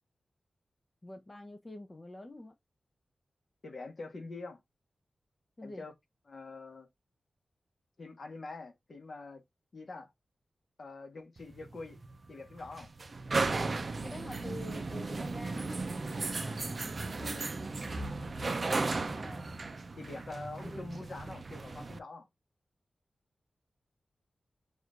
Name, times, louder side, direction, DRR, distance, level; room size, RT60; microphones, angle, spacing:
voice 1, 1.0-2.5 5.6-5.9 14.0-16.9 19.1-19.5 20.6-20.8, left 1 dB, 25° left, 0.6 m, -47 dB
voice 2, 3.6-4.6 5.6-5.9 6.3-6.9 8.0-9.4 9.7-10.1 10.8-12.0 12.3-12.9 17.2-17.5 20.0-22.3, left 3 dB, 55° left, 1.2 m, -45 dB
sound 1, 11.4-22.0, right 3 dB, 45° right, 0.5 m, -36 dB
6.1 x 2.6 x 2.4 m
wide cardioid pair, 100°, 0 cm